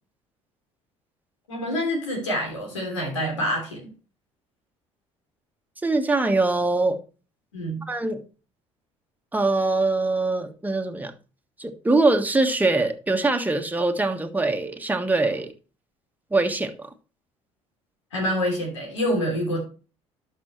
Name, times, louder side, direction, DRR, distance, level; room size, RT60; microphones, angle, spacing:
voice 1, 1.5-3.9 7.5-7.8 18.1-19.6, equal, 90° left, 3.2 m, -26 dB
voice 2, 5.8-7.0 7.9-8.2 9.3-11.1 11.6-15.5 16.3-16.9, right 2 dB, 10° right, 1.5 m, -23 dB
12.0 x 5.6 x 3.2 m
hypercardioid pair, 60°, 15 cm